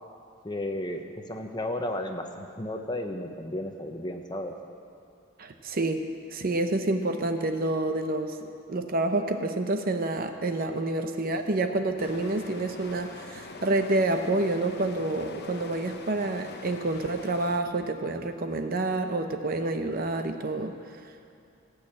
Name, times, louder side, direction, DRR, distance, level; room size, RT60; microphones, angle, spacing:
voice 1, 0.4-1.0 1.3-4.5, left 1 dB, 20° left, 4 dB, 0.8 m, -33 dB
voice 2, 5.4-20.7, right 2 dB, 45° right, 6 dB, 0.7 m, -28 dB
sound 1, 12.0-17.6, left 3 dB, 50° left, 0.8 m, -43 dB
16.5 x 6.4 x 8.6 m, 2.6 s
head